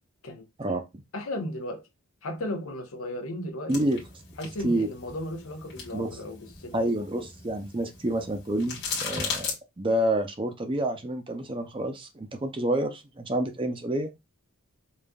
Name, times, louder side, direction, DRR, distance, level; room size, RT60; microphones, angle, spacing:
voice 1, 0.2-0.8 1.1-1.8 2.2-3.8 4.4-6.8, left 1 dB, 75° left, 0.9 m, -35 dB
sound 1, 3.7-9.5, left 5 dB, 50° left, 1.4 m, -37 dB
voice 2, 3.7-4.0 4.6-4.9 5.9-6.1 6.7-14.1, right 1 dB, 25° right, 0.5 m, -28 dB
5.1 x 2.4 x 2.3 m
head